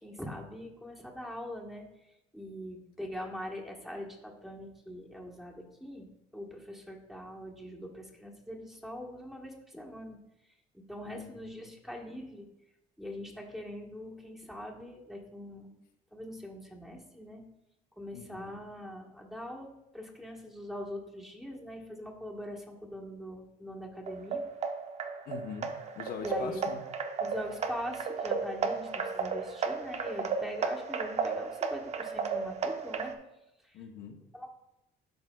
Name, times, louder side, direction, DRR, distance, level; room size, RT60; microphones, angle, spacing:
voice 1, 0.0-1.8 2.3-10.2 10.7-12.5 13.0-15.8 16.1-17.4 18.0-24.4 26.2-26.7 27.2-33.1 33.6-33.8 34.3-34.5, equal, ahead, -1 dB, 1.3 m, -42 dB
voice 2, 11.1-11.7 18.1-18.6 25.3-26.8 33.7-34.2, left 6 dB, 65° left, 4 dB, 0.9 m, -43 dB
sound 1, 24.1-33.1, right 5 dB, 40° right, 0.7 m, -34 dB
12.0 x 4.7 x 2.3 m, 0.89 s
cardioid pair, 125°, 16 cm